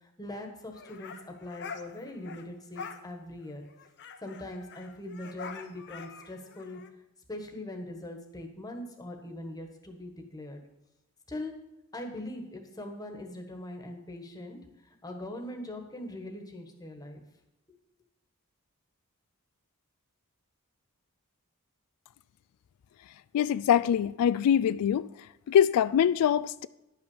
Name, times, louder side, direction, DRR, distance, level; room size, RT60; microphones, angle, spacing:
voice 1, 0.0-3.6 4.2-6.8 7.3-10.6 11.3-11.5 11.9-14.6 14.8-17.2, left 1 dB, 15° left, 1.3 m, -41 dB
sound 1, 0.7-2.5 2.8-3.0 3.4-3.5 3.7-6.9, left 5 dB, 50° left, 0.8 m, -45 dB
voice 2, 23.3-25.1 25.5-26.7, left 9 dB, 85° left, 0.3 m, -23 dB
11.0 x 5.7 x 7.2 m
head